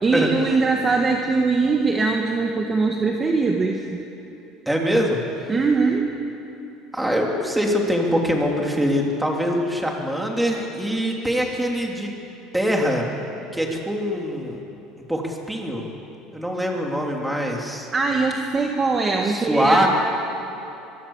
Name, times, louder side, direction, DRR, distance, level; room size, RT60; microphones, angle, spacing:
voice 1, 0.0-4.0 5.5-6.1 17.9-19.9, right 4 dB, 20° right, 2 dB, 1.7 m, -21 dB
voice 2, 4.6-5.2 6.9-12.1 12.5-13.1 13.5-14.6 15.1-15.9 16.3-17.9 19.3-19.9, equal, 5° right, 0 dB, 3.3 m, -23 dB
23.0 x 23.0 x 7.4 m, 2.9 s
cardioid pair, 140°, 0 cm